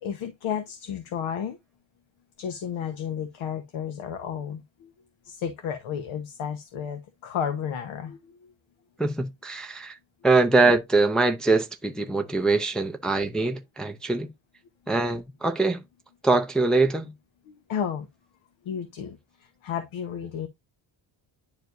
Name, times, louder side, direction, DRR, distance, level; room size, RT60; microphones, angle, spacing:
voice 1, 0.0-1.6 2.4-4.9 5.2-8.5 17.5-18.1 18.6-20.5, left 8 dB, 75° left, 1.3 m, -32 dB
voice 2, 9.0-10.0 10.2-14.3 14.9-15.8 16.2-17.1, right 3 dB, ahead, 0.4 m, -23 dB
10.5 x 4.6 x 2.6 m
cardioid pair, 165°, 48 cm